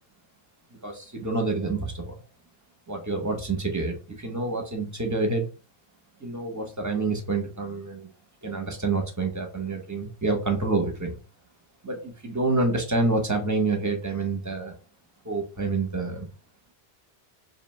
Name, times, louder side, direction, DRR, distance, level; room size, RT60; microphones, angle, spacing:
voice 1, 0.8-2.1 2.9-5.5 6.2-8.1 8.4-11.2 11.8-14.7 15.2-16.3, right 3 dB, 20° right, 4 dB, 0.8 m, -27 dB
3.4 x 2.8 x 4.1 m, 0.34 s
omnidirectional pair, 1.1 m